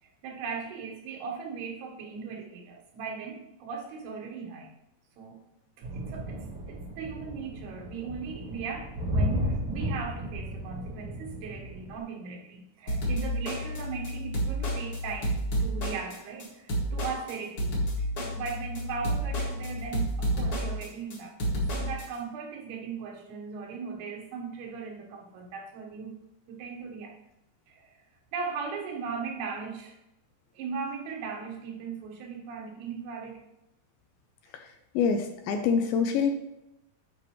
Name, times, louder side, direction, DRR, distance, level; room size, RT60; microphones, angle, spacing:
voice 1, 0.0-4.7 5.2-5.4 5.8-18.1 18.3-26.2 26.5-27.2 27.7-28.0 28.3-30.0 30.5-33.4, right 5 dB, 85° right, 1 dB, 3.2 m, -38 dB
sound 1, 5.8-12.0, equal, 55° right, 1.6 m, -34 dB
sound 2, 12.9-22.1, equal, 40° left, 2.1 m, -30 dB
voice 2, 35.0-36.3, left 6 dB, 80° left, 6 dB, 2.2 m, -25 dB
11.0 x 5.2 x 3.1 m, 0.89 s
omnidirectional pair, 4.5 m